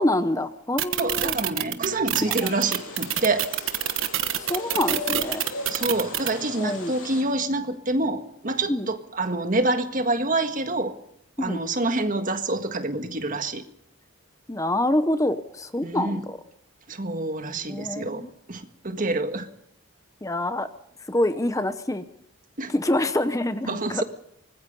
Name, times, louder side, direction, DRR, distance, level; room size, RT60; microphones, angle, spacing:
voice 1, 0.0-1.4 2.3-2.5 4.4-5.4 6.6-6.9 8.7-8.9 11.4-11.6 14.5-16.4 17.7-18.3 20.2-20.7 21.1-22.0 22.7-24.0, left 1 dB, 15° left, 11 dB, 0.8 m, -26 dB
sound 1, 0.8-6.3, right 11 dB, 65° right, 1.2 m, -25 dB
voice 2, 1.0-3.5 5.7-11.0 11.4-13.6 15.8-16.2 16.9-19.5 22.6-22.7 23.7-24.0, right 2 dB, 40° right, 8 dB, 1.7 m, -27 dB
sound 2, 2.2-7.2, left 2 dB, 85° left, 7.5 m, -37 dB
24.5 x 20.0 x 5.5 m, 0.73 s
head